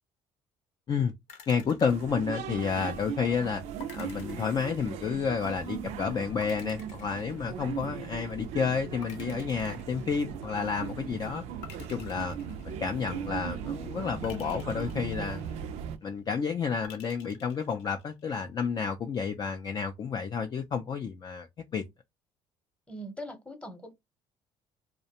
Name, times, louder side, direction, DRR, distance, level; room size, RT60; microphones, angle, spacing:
sound 1, 1.3-2.9 3.8-5.4 6.4-8.1 9.0-10.6 11.6-13.3 14.2-15.9 16.8-18.2, left 6 dB, 85° left, 0.8 m, -51 dB
voice 1, 1.5-3.6 3.9-11.4 11.9-12.4 12.6-15.6 16.0-21.5 21.7-21.8, left 6 dB, 35° left, 0.3 m, -30 dB
sound 2, 1.9-16.0, right 8 dB, 70° right, 0.4 m, -38 dB
voice 2, 22.9-23.9, equal, 10° left, 0.8 m, -41 dB
2.4 x 2.1 x 2.8 m
supercardioid pair, 95°, 12 cm